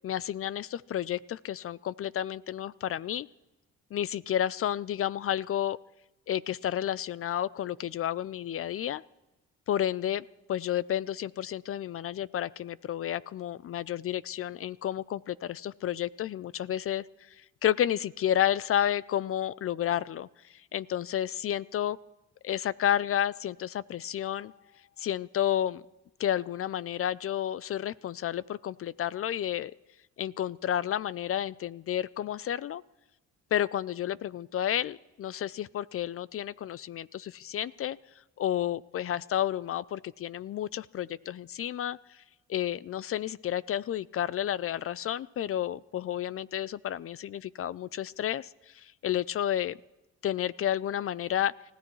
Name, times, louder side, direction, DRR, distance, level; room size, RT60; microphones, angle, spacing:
voice 1, 0.0-3.3 3.9-5.8 6.3-9.0 9.7-22.0 22.4-24.5 25.0-25.8 26.2-29.7 30.2-32.8 33.5-38.0 38.4-42.2 42.5-49.8 50.2-51.5, left 11 dB, 50° left, 20 dB, 0.4 m, -31 dB
29.5 x 15.0 x 3.1 m, 1.0 s
cardioid pair, 90°, 30 cm